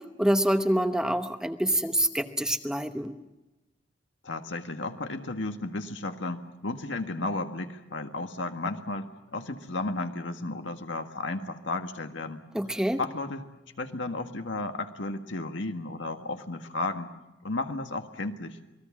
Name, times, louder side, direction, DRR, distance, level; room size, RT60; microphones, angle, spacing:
voice 1, 0.2-3.1 12.5-13.0, right 1 dB, 5° right, 7 dB, 0.9 m, -26 dB
voice 2, 4.2-12.4 13.0-13.5 13.8-17.1 17.4-18.6, left 2 dB, 75° left, 6 dB, 1.7 m, -33 dB
28.0 x 20.0 x 7.3 m, 1.0 s
head